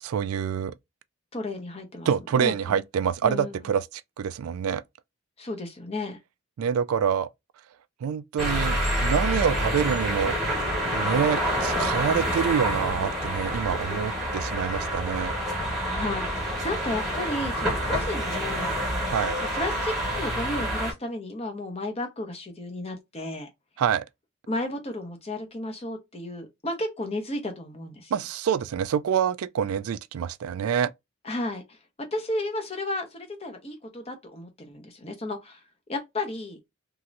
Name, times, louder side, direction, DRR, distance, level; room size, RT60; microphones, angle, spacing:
voice 1, 0.0-0.7 2.1-4.8 6.6-7.3 8.0-10.4 10.9-15.3 19.1-19.4 23.8-24.0 28.1-30.9, right 8 dB, 85° right, 0.3 m, -26 dB
voice 2, 1.3-2.8 3.2-3.7 5.4-6.2 15.9-18.8 19.5-23.5 24.5-28.1 31.2-35.6 35.9-36.6, left 1 dB, 30° left, 0.8 m, -33 dB
sound 1, 8.4-20.9, equal, ahead, 1.4 m, -27 dB
3.1 x 2.8 x 2.5 m
head